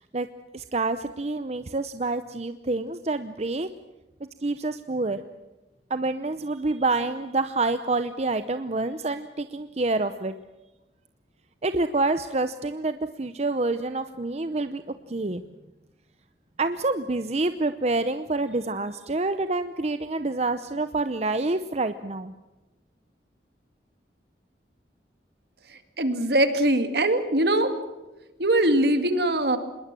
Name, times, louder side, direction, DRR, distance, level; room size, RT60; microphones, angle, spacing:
voice 1, 0.5-3.7 4.4-5.2 5.9-10.3 11.6-14.8 15.1-15.4 16.6-22.3, right 2 dB, 35° right, 11 dB, 0.7 m, -27 dB
voice 2, 26.0-27.8 28.4-29.6, right 1 dB, 65° right, 8 dB, 2.3 m, -22 dB
26.5 x 21.0 x 7.6 m, 1.1 s
head